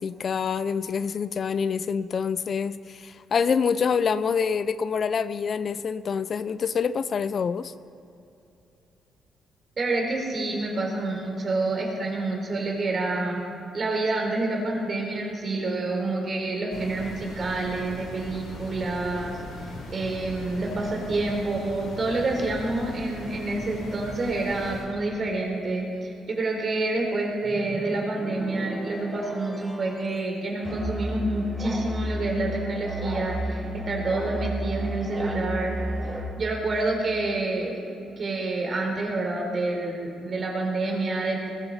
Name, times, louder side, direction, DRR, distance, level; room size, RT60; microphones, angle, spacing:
voice 1, 0.0-7.7, left 6 dB, 50° left, 15 dB, 0.4 m, -26 dB
voice 2, 9.8-13.4 13.7-19.4 19.6-35.7 36.4-37.8 38.2-41.5, right 2 dB, 45° right, 0 dB, 4.0 m, -28 dB
sound 1, 16.7-24.8, left 2 dB, 80° left, 3.8 m, -39 dB
sound 2, 27.4-30.4, equal, ahead, 1.2 m, -38 dB
Musical instrument, 30.6-36.3, equal, 20° right, 2.7 m, -32 dB
20.5 x 13.5 x 4.2 m, 2.8 s
cardioid pair, 90°, 0 cm